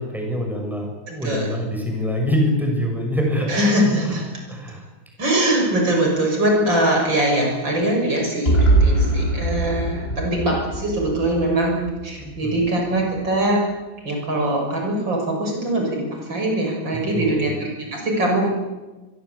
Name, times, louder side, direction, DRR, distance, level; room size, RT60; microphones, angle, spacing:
voice 1, 0.0-4.2 4.5-4.8 10.1-10.2 12.2-12.6 17.1-17.5, equal, ahead, 1 dB, 7.0 m, -25 dB
voice 2, 1.1-1.5 3.5-4.3 5.2-13.6 14.0-18.5, right 1 dB, 70° right, 1 dB, 7.2 m, -22 dB
sound 1, 8.5-12.3, right 2 dB, 30° left, 6.2 m, -21 dB
24.5 x 22.5 x 8.5 m, 1.2 s
omnidirectional pair, 2.1 m